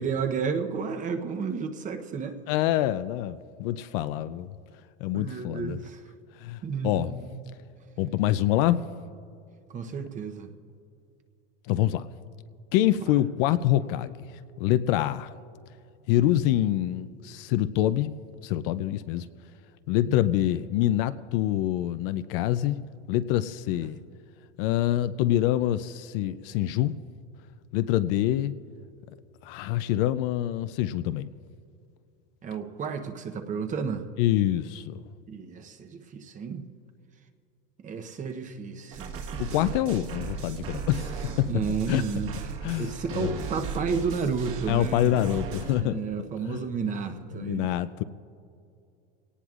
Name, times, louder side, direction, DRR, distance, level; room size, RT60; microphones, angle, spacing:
voice 1, 0.0-2.4 5.1-6.0 6.6-7.4 9.7-10.5 13.0-13.1 16.2-16.4 20.1-20.2 23.7-23.8 32.4-34.1 35.3-36.7 37.8-39.2 41.5-42.4 42.8-45.2 45.8-47.7, right 5 dB, 20° right, 6 dB, 0.8 m, -32 dB
voice 2, 2.5-4.5 5.0-5.8 6.4-7.1 8.0-8.8 11.7-12.1 12.7-14.1 14.6-15.3 16.1-18.1 18.4-19.3 19.9-22.8 23.1-24.0 24.6-26.9 27.7-28.5 29.4-31.3 34.2-35.0 39.4-41.5 41.9-42.0 42.6-43.3 44.7-46.0 46.5-46.6 47.4-48.0, left 13 dB, 55° left, 13 dB, 0.5 m, -26 dB
sound 1, 38.9-45.8, right 5 dB, 40° right, 1.4 m, -36 dB
23.5 x 18.0 x 2.4 m, 2.4 s
supercardioid pair, 135°, 34 cm